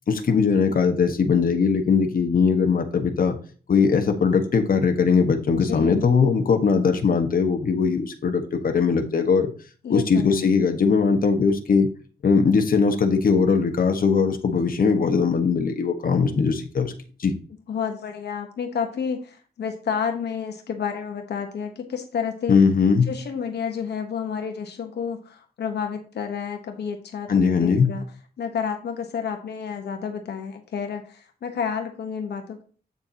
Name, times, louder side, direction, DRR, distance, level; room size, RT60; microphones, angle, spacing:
voice 1, 0.1-3.4 3.7-9.5 9.9-11.9 12.2-16.9 17.2-17.3 22.5-23.1 27.3-27.9, left 5 dB, 60° left, 5 dB, 1.4 m, -20 dB
voice 2, 5.5-6.0 9.8-10.5 17.7-22.6 23.1-28.0 28.4-32.6, left 7 dB, 85° left, 5 dB, 1.2 m, -30 dB
8.6 x 6.9 x 2.9 m, 0.39 s
cardioid pair, 90°, 17 cm